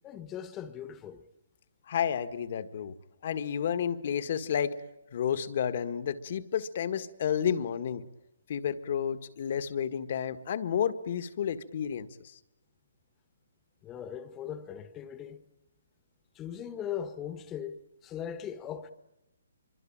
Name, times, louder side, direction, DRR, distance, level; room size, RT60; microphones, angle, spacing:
voice 1, 0.0-1.2 13.8-15.4 16.3-18.9, left 9 dB, 15° left, 1.5 m, -39 dB
voice 2, 1.9-2.9 3.2-4.7 5.1-8.0 8.5-12.3, left 8 dB, 50° left, 1.8 m, -31 dB
25.5 x 24.5 x 8.9 m
hypercardioid pair, 155°, 0 cm